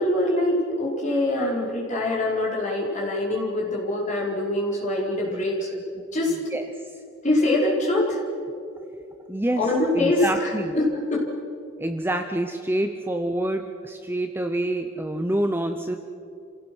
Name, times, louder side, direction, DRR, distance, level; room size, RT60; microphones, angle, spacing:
voice 1, 0.0-5.8 6.1-6.3 7.2-8.2 9.5-11.2, left 1 dB, 35° left, -4 dB, 4.9 m, -24 dB
voice 2, 9.3-9.6 9.9-10.7 11.8-16.0, right 1 dB, 10° right, 6 dB, 0.7 m, -27 dB
27.5 x 17.0 x 6.3 m, 2.5 s
head